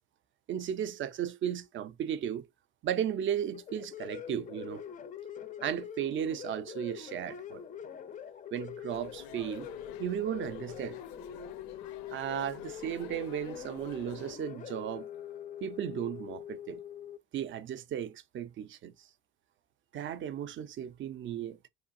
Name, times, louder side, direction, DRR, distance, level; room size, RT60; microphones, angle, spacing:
voice 1, 0.5-2.4 2.8-4.8 5.6-7.6 8.5-9.7 10.0-11.0 12.1-15.1 15.6-16.8 17.3-19.1 19.9-21.6, right 9 dB, 35° right, 0.4 m, -35 dB
sound 1, 3.4-17.2, left 9 dB, 25° left, 0.4 m, -44 dB
sound 2, 8.9-14.4, left 13 dB, 80° left, 0.5 m, -51 dB
4.6 x 3.2 x 2.5 m
cardioid pair, 135°, 35 cm